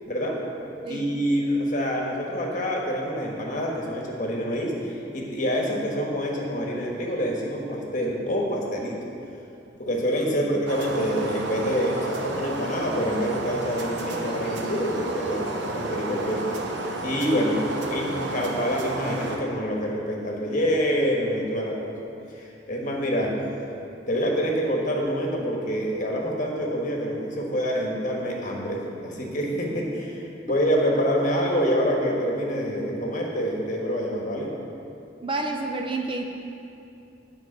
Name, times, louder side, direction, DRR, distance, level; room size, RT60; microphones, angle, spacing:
voice 1, 0.1-0.4 0.9-9.0 9.7-16.4 17.0-21.9 22.3-23.3 24.1-34.5, equal, 45° left, -1 dB, 1.4 m, -26 dB
sound 1, 10.7-19.4, right 2 dB, 70° right, 0.8 m, -32 dB
voice 2, 35.2-36.2, right 2 dB, 30° right, 3 dB, 0.5 m, -29 dB
9.4 x 4.7 x 6.5 m, 2.7 s
head